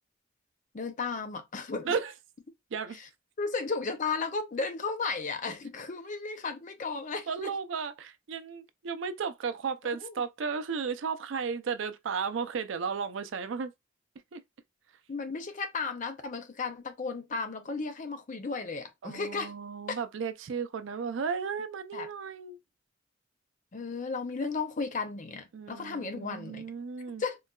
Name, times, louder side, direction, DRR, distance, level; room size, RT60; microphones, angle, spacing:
voice 1, 0.7-1.9 2.9-3.1 3.4-7.5 10.0-10.1 15.1-19.5 19.9-20.0 21.9-22.1 23.7-26.7 27.2-27.4, left 4 dB, 40° left, 0.5 m, -34 dB
voice 2, 7.3-13.7 14.3-14.4 19.0-22.6 25.5-27.2, right 6 dB, 70° right, 0.4 m, -34 dB
3.8 x 2.2 x 2.3 m
head